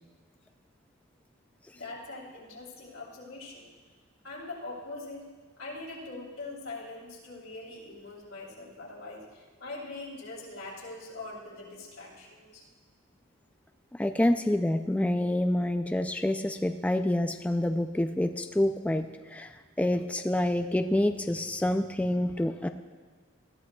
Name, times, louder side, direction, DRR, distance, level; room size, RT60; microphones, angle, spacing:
voice 1, 1.7-3.7 4.2-5.3 5.6-12.7, left 2 dB, 85° left, -3 dB, 3.2 m, -42 dB
voice 2, 13.9-22.7, left 1 dB, 5° left, 7 dB, 0.3 m, -27 dB
20.0 x 14.0 x 2.3 m, 1.5 s
head